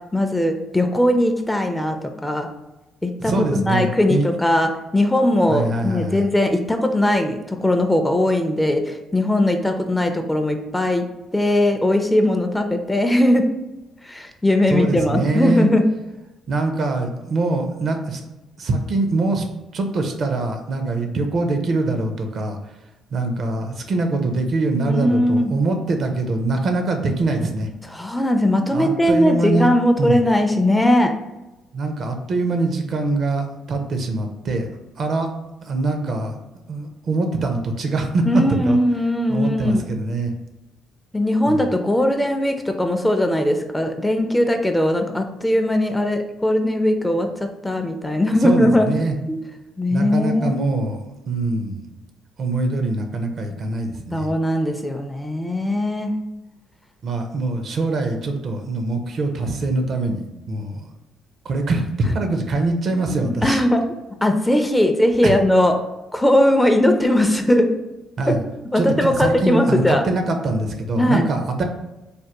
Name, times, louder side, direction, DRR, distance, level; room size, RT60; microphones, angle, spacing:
voice 1, 0.1-2.5 3.0-11.0 11.3-13.5 14.0-15.8 24.8-25.5 27.9-31.1 38.2-39.9 41.1-48.9 49.3-49.4 49.8-50.5 54.1-56.1 62.9-63.8 64.2-65.7 66.1-67.7 68.3-68.4 68.7-70.0 70.9-71.2, left 1 dB, 10° left, 5 dB, 0.4 m, -19 dB
voice 2, 3.2-4.3 5.5-6.2 14.7-15.7 16.5-18.2 18.6-19.5 19.7-22.6 23.1-27.7 28.7-29.7 30.0-30.2 31.7-34.7 35.0-35.3 35.7-36.3 36.7-38.8 39.3-40.3 41.5-41.6 48.4-49.2 49.9-51.0 51.3-51.9 52.4-54.3 57.0-60.8 61.4-63.6 65.2-65.3 68.2-68.4 68.8-71.6, right 2 dB, 55° right, 5 dB, 0.5 m, -23 dB
3.3 x 2.1 x 2.9 m, 1.0 s
supercardioid pair, 65°, 0 cm